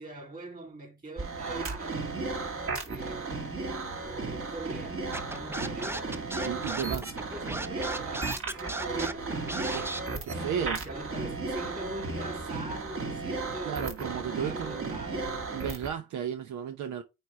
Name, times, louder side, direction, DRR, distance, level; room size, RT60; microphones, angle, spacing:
voice 1, 0.0-2.0 2.8-3.6 4.0-6.2 6.6-7.0 7.3-10.2 10.6-13.9 14.4-15.3, right 2 dB, 25° right, 3.7 m, -43 dB
sound 1, 1.2-15.9, right 3 dB, 45° right, 2.2 m, -35 dB
Scratching (performance technique), 5.1-10.0, right 1 dB, 10° right, 0.6 m, -35 dB
voice 2, 6.4-7.1 9.7-9.9 10.2-10.8 13.6-15.0 15.5-17.0, right 8 dB, 70° right, 0.8 m, -34 dB
9.0 x 3.4 x 3.6 m
cardioid pair, 90°, 30 cm